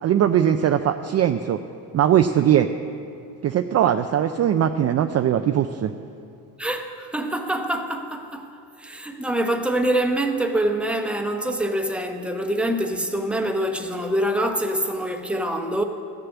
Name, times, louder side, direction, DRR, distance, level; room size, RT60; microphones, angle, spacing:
voice 1, 0.0-1.6 1.9-2.7 3.4-5.9, right 10 dB, 40° right, 7 dB, 0.4 m, -20 dB
voice 2, 6.6-8.5 8.8-15.8, right 1 dB, 5° right, 4 dB, 0.9 m, -25 dB
14.5 x 6.8 x 8.1 m, 2.5 s
cardioid pair, 110°, 43 cm